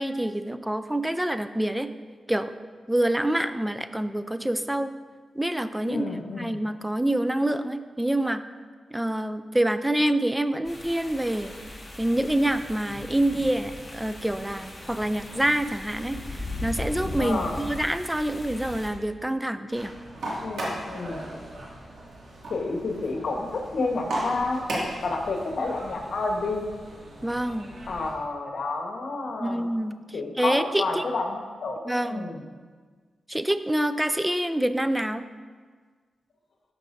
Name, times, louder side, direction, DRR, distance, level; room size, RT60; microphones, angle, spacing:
voice 1, 0.0-1.9 2.3-2.5 2.9-4.9 5.4-6.1 6.3-8.4 8.9-11.5 12.0-19.9 27.2-27.7 29.4-30.0 30.4-31.0 31.9-32.3 33.3-35.2, right 1 dB, 10° right, 11 dB, 0.4 m, -26 dB
voice 2, 5.9-6.6 17.2-17.6 20.4-21.3 22.5-24.6 25.0-26.7 27.9-29.7 30.1-32.4, left 3 dB, 70° left, 2 dB, 1.2 m, -30 dB
sound 1, 10.6-18.9, left 2 dB, 25° left, 1.6 m, -38 dB
sound 2, 19.7-28.1, right 1 dB, 80° right, 2.1 m, -36 dB
12.5 x 6.0 x 2.6 m, 1.5 s
cardioid pair, 80°, 0 cm